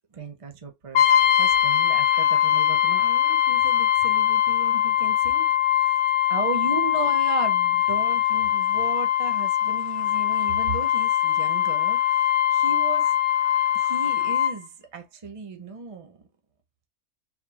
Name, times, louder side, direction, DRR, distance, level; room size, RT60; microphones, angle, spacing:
voice 1, 0.1-5.5 5.9-6.0 6.3-13.1 13.7-16.3, right 4 dB, 60° right, 0.3 m, -35 dB
Brass instrument, 0.9-14.6, left 10 dB, 80° left, 1.0 m, -22 dB
4.0 x 2.9 x 2.8 m
omnidirectional pair, 1.5 m